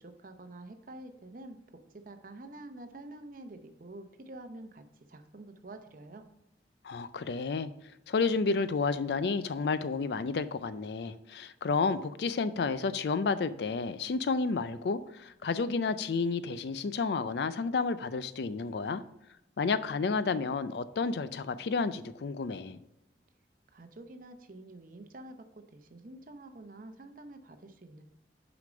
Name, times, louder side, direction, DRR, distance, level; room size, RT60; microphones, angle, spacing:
voice 1, 0.0-6.3 23.7-28.0, right 2 dB, 50° right, 0.7 m, -48 dB
voice 2, 6.8-7.7 8.1-19.0 19.6-22.8, left 4 dB, 65° left, 0.4 m, -31 dB
6.5 x 5.1 x 5.0 m
head